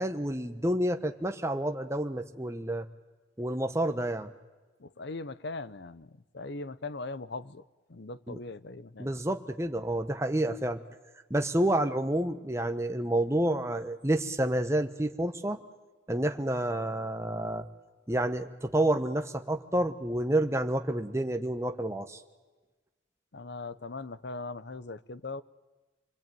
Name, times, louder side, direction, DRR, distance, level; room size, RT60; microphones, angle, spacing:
voice 1, 0.0-2.9 3.4-4.3 8.3-8.4 9.0-10.8 11.3-15.6 16.1-17.7 18.1-22.2, right 1 dB, 15° right, 1.1 m, -29 dB
voice 2, 4.8-7.6 7.9-9.1 23.3-25.4, left 3 dB, 60° left, 0.8 m, -40 dB
27.0 x 21.5 x 9.2 m
head